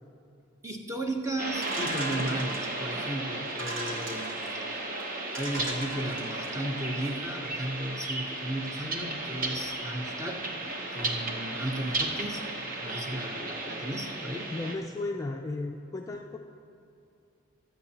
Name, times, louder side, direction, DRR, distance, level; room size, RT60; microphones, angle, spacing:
voice 1, 0.6-4.6 5.3-10.5 10.9-12.4 12.8-14.5, right 1 dB, 15° right, 2 dB, 0.9 m, -35 dB
sound 1, 1.4-14.8, right 2 dB, 45° right, 1.0 m, -34 dB
sound 2, 1.6-2.9 3.5-4.5 5.0-5.1 5.3-6.6, right 2 dB, 85° right, 1.8 m, -39 dB
voice 2, 14.5-16.4, left 2 dB, 15° left, 2 dB, 0.4 m, -34 dB
23.5 x 7.9 x 2.9 m, 2.6 s
head